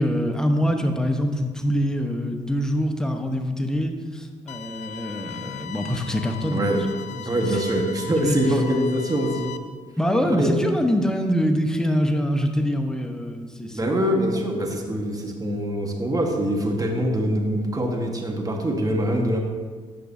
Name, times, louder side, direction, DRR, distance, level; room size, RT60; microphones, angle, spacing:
voice 1, 0.0-6.8 7.1-7.6 8.2-8.4 10.0-13.9, equal, 5° left, 4 dB, 1.0 m, -24 dB
sound 1, 4.5-9.6, left 8 dB, 65° left, 0.4 m, -38 dB
voice 2, 6.5-6.8 7.2-9.5 10.2-10.5 13.7-19.4, equal, 30° right, 2 dB, 1.4 m, -24 dB
10.0 x 6.1 x 2.7 m, 1.5 s
supercardioid pair, 60°, 13 cm